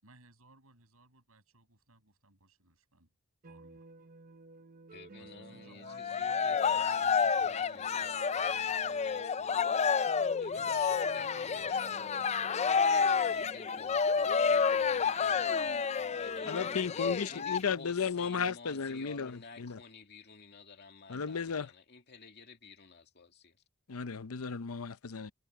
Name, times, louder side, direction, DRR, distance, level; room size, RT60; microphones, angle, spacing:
voice 1, 0.0-3.1 3.4-3.8 5.2-8.2 10.5-12.8, right 2 dB, 75° right, 6.8 m, -62 dB
sound 1, 3.4-16.7, right 3 dB, 40° right, 0.7 m, -53 dB
voice 2, 4.9-9.9 10.4-12.2 13.1-23.6, left 4 dB, 50° left, 2.5 m, -53 dB
Cheering, 5.8-17.6, left 6 dB, 30° left, 0.4 m, -30 dB
voice 3, 16.5-19.8 21.1-21.7 23.9-25.3, left 6 dB, 75° left, 0.7 m, -34 dB
head